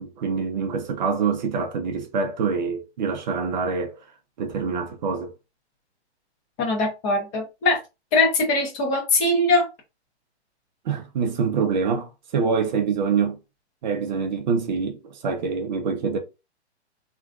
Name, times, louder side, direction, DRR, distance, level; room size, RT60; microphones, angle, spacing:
voice 1, 0.0-4.0 4.4-5.3 10.8-13.4 13.8-16.2, right 5 dB, 40° right, 0.6 m, -25 dB
voice 2, 6.6-7.8 8.1-9.7, left 2 dB, 25° left, 1.0 m, -21 dB
3.0 x 2.4 x 2.5 m
hypercardioid pair, 145°, 34 cm